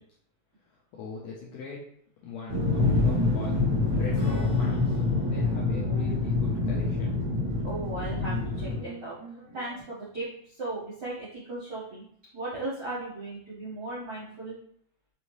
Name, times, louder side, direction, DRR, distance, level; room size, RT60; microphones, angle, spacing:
voice 1, 0.9-1.8 2.2-3.6 4.0-7.2 7.6-7.7, left 4 dB, 75° left, -4 dB, 1.6 m, -40 dB
sound 1, 2.5-8.8, left 3 dB, 25° right, 0.9 m, -26 dB
sound 2, 2.6-9.8, right 1 dB, 50° right, 0.9 m, -47 dB
Acoustic guitar / Strum, 4.1-10.1, equal, 55° left, 1.8 m, -46 dB
voice 2, 7.6-9.2 9.5-12.0 12.3-14.6, right 2 dB, 75° right, -9 dB, 0.9 m, -36 dB
5.4 x 2.7 x 3.1 m, 0.67 s
omnidirectional pair, 3.7 m